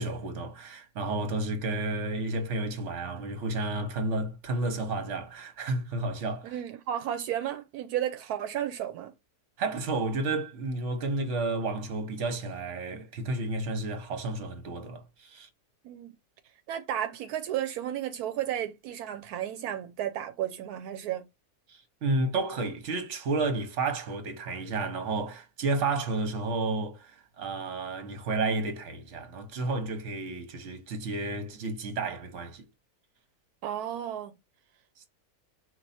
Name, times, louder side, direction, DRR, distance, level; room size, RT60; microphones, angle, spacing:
voice 1, 0.0-6.6 9.6-15.5 21.7-27.1 27.4-32.6, right 3 dB, 55° right, 1.3 m, -31 dB
voice 2, 6.4-9.1 15.8-16.1 16.7-21.2 33.6-34.3, right 11 dB, 85° right, 1.1 m, -33 dB
4.6 x 2.7 x 4.1 m
omnidirectional pair, 1.6 m